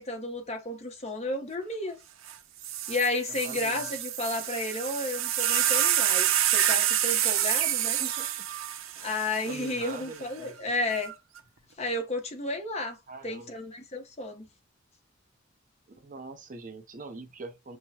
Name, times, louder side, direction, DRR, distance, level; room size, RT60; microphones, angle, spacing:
voice 1, 0.0-2.0 2.9-8.0 9.0-11.1 11.8-13.0 13.2-14.5, left 2 dB, 35° left, 0.9 m, -32 dB
sound 1, 2.3-2.4 2.6-10.0 10.9-11.4, right 11 dB, 85° right, 0.5 m, -28 dB
voice 2, 3.4-3.9 7.8-8.3 9.4-10.8 13.1-13.5 15.9-17.8, right 3 dB, 40° right, 0.6 m, -43 dB
6.2 x 2.2 x 2.8 m
head